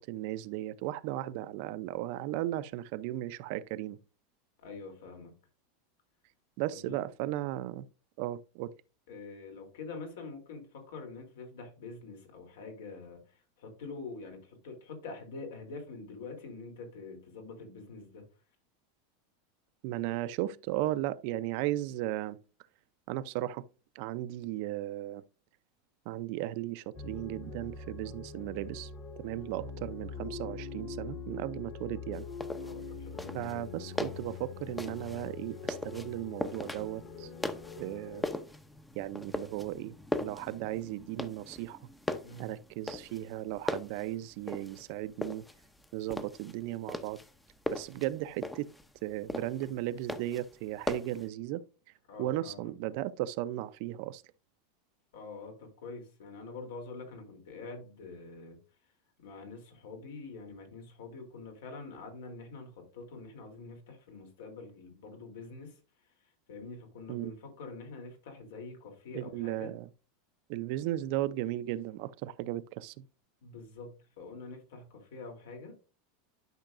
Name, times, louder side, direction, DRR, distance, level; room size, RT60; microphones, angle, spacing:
voice 1, 0.0-4.0 6.6-7.9 8.2-8.7 19.8-22.4 23.1-23.6 23.9-25.2 26.1-28.9 29.2-32.3 33.3-37.3 37.8-38.2 38.9-41.8 42.4-45.4 45.9-47.2 47.7-48.7 49.0-51.6 52.2-54.2 67.1-67.3 69.1-69.9 70.5-73.1, right 14 dB, 55° right, 0.5 m, -36 dB
voice 2, 4.6-5.3 6.7-7.0 9.1-18.2 29.3-29.4 32.6-33.6 42.2-42.5 52.1-52.7 55.1-58.6 59.2-65.8 66.5-69.7 73.4-73.9 74.2-75.7, left 3 dB, 85° left, 3.1 m, -45 dB
sound 1, 26.9-38.2, left 4 dB, 40° left, 1.4 m, -43 dB
sound 2, 32.1-51.3, left 2 dB, 5° left, 0.6 m, -40 dB
12.0 x 5.7 x 2.5 m
supercardioid pair, 150°, 0 cm